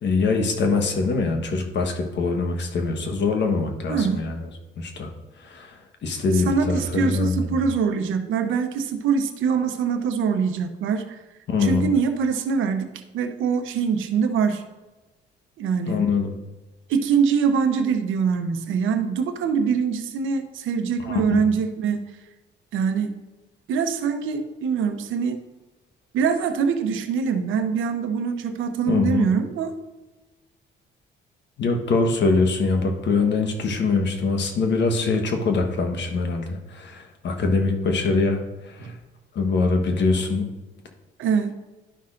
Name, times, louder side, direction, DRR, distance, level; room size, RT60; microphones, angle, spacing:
voice 1, 0.0-4.4 4.8-5.1 5.4-7.3 11.5-11.9 15.9-16.3 21.0-21.5 28.9-29.3 31.6-38.9 39.3-40.5, left 4 dB, 65° left, 4 dB, 1.3 m, -23 dB
voice 2, 3.9-4.2 6.3-11.2 11.6-12.9 13.1-14.6 15.6-16.0 16.9-22.1 22.7-23.2 23.7-25.4 26.1-29.7 38.8-38.9 41.2-41.5, right 6 dB, 80° right, 7 dB, 0.8 m, -23 dB
12.0 x 5.7 x 2.6 m, 1.1 s
cardioid pair, 90°, 20 cm